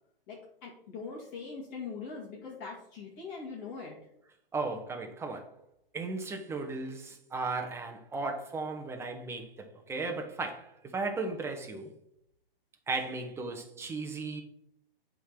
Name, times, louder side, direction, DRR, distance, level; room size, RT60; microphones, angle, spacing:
voice 1, 0.3-4.0, left 4 dB, 30° left, 2.1 m, -42 dB
voice 2, 4.5-5.5 5.9-11.9 12.9-14.4, right 3 dB, 10° right, 0.9 m, -36 dB
8.2 x 3.9 x 5.9 m
hypercardioid pair, 135°, 29 cm